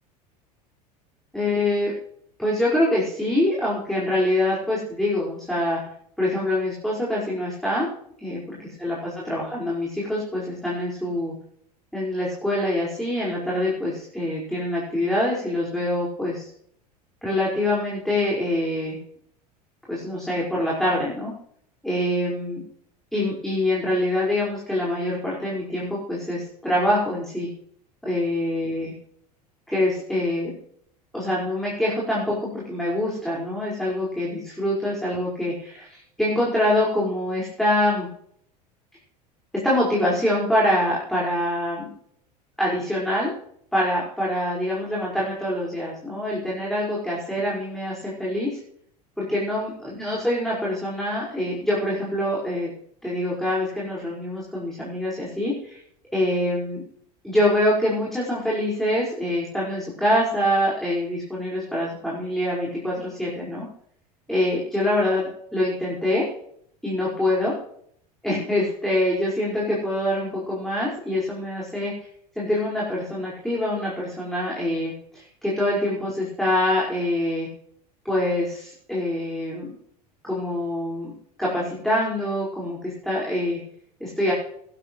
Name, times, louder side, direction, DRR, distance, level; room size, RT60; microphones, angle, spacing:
voice 1, 1.3-1.9 2.4-5.8 6.2-7.9 8.2-11.3 11.9-16.5 17.2-19.0 19.9-21.3 21.8-22.6 23.1-27.5 28.0-28.9 29.7-30.5 31.1-38.1 39.6-41.9 42.6-43.3 43.7-48.6 49.2-52.7 53.0-55.8 56.1-56.8 57.2-63.7 64.3-66.3 66.8-67.5 68.2-71.9 72.3-77.5 78.0-79.7 80.2-83.6 84.0-84.3, left 1 dB, ahead, -6 dB, 5.2 m, -25 dB
20.0 x 12.0 x 3.2 m, 0.66 s
figure-of-eight pair, 75°, 21 cm